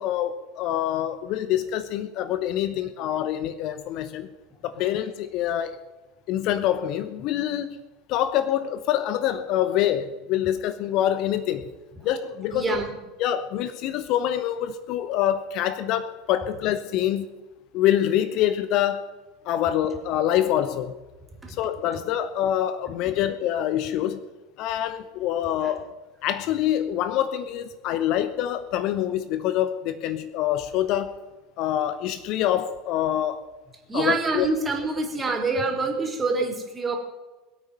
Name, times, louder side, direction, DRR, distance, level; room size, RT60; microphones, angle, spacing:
voice 1, 0.0-4.3 4.6-5.8 6.3-7.8 8.1-11.7 12.0-12.8 13.2-17.3 17.7-19.1 19.4-20.9 21.6-24.2 24.6-25.8 26.2-31.2 31.6-33.4 33.9-34.5, left 11 dB, 50° left, 12 dB, 0.9 m, -25 dB
voice 2, 12.5-12.9 21.4-21.5 25.5-25.7 33.9-37.0, right 3 dB, 20° right, 2 dB, 3.8 m, -26 dB
22.0 x 8.6 x 5.5 m, 1.2 s
figure-of-eight pair, 75°, 0 cm